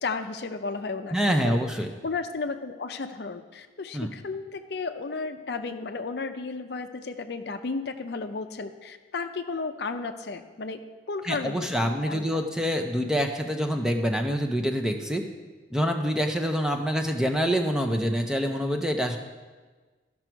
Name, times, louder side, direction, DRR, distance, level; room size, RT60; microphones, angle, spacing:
voice 1, 0.0-1.6 2.0-10.8 11.1-12.4, left 4 dB, 60° left, 8 dB, 0.5 m, -33 dB
voice 2, 1.1-1.9 3.9-4.1 11.3-15.2 15.7-19.2, equal, 5° right, 4 dB, 0.6 m, -26 dB
13.5 x 6.0 x 4.5 m, 1.3 s
head